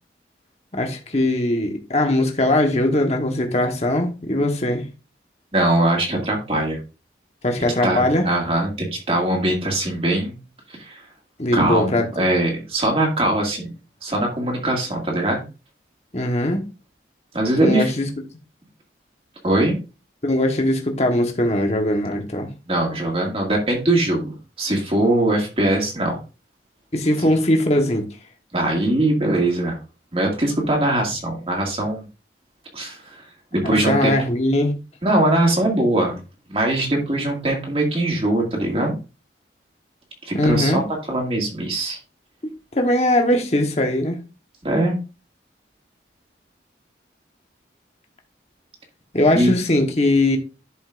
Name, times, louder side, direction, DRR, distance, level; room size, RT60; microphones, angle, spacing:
voice 1, 0.7-4.8 7.4-8.3 11.4-12.3 16.1-16.6 17.6-18.1 20.2-22.5 26.9-28.0 33.6-34.7 40.3-40.8 42.7-44.2 49.1-50.4, left 1 dB, 35° left, 1.2 m, -20 dB
voice 2, 5.5-6.8 7.8-10.4 10.8-11.0 11.5-13.7 14.0-15.4 17.3-17.9 19.4-19.8 22.7-26.2 28.5-29.8 30.1-32.0 32.7-33.2 33.5-34.1 35.0-36.2 36.5-39.0 40.3-40.8 41.1-42.0 44.6-45.0 49.3-49.6, right 1 dB, 30° right, 2.1 m, -21 dB
11.5 x 5.3 x 2.5 m
head